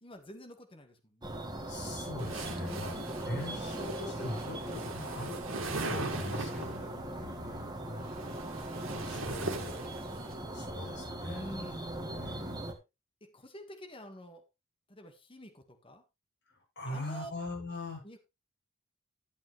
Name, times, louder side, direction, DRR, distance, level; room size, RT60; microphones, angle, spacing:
voice 1, 0.0-1.4 6.5-7.2 11.2-12.0 13.2-14.4 14.9-16.0 16.9-17.3 18.0-18.2, equal, 25° left, 5 dB, 1.7 m, -48 dB
sound 1, 1.2-12.7, right 1 dB, 20° right, 1.6 m, -40 dB
voice 2, 1.7-5.5 5.8-8.4 9.0-9.8 10.1-11.5 12.1-12.6 16.5-18.0, left 2 dB, 50° left, -2 dB, 7.9 m, -42 dB
sound 2, 2.2-6.9 7.9-10.3, right 3 dB, 65° right, 2.0 m, -40 dB
11.5 x 8.8 x 3.3 m, 0.24 s
head